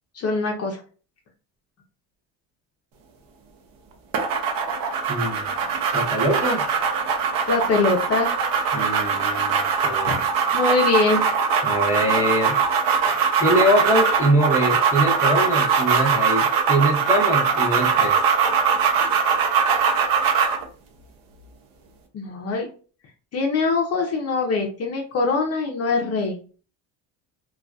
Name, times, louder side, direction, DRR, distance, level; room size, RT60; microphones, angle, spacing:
voice 1, 0.1-0.8 7.5-8.3 10.0-10.2 10.5-11.2 22.1-22.7 23.3-26.4, left 4 dB, 40° left, 1 dB, 0.5 m, -23 dB
sound 1, 4.1-20.6, right 6 dB, 60° right, 0.6 m, -21 dB
voice 2, 5.1-5.6 5.9-6.6 8.7-10.2 11.6-12.6 13.4-18.2, right 1 dB, 10° right, -3 dB, 0.7 m, -23 dB
2.4 x 2.3 x 2.2 m, 0.39 s
cardioid pair, 115°, 39 cm